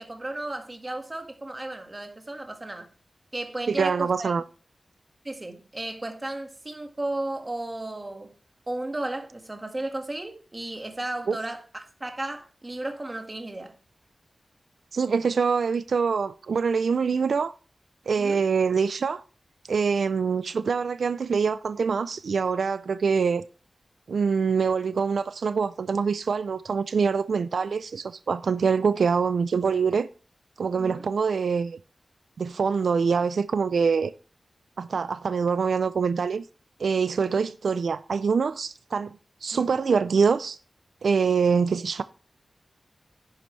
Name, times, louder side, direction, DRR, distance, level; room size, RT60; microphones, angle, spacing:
voice 1, 0.0-2.9 3.3-4.3 5.2-8.3 8.7-13.8 18.2-18.4 30.8-31.0 39.5-39.7, right 2 dB, 25° right, 1.7 m, -34 dB
voice 2, 3.7-4.4 11.3-11.4 14.9-17.5 18.1-19.2 19.7-23.4 24.1-30.1 30.6-31.8 32.4-34.1 34.8-36.5 36.8-39.1 39.4-40.6 41.0-42.0, right 5 dB, 85° right, 0.4 m, -24 dB
10.5 x 9.6 x 3.2 m
wide cardioid pair, 120°, 0 cm